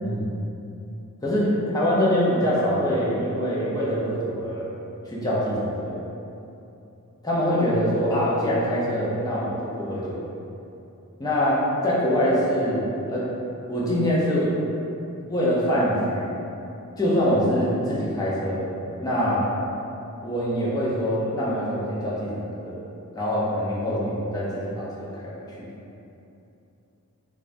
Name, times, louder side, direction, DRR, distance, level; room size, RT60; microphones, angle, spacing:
voice 1, 0.0-0.3 1.2-4.7 5.1-6.0 7.2-10.2 11.2-13.3 13.7-14.5 15.3-16.4 17.0-18.7 19.0-19.5 20.2-22.8 23.2-25.3 25.6-25.7, equal, 15° left, -7 dB, 0.6 m, -24 dB
4.0 x 2.4 x 2.5 m, 2.8 s
head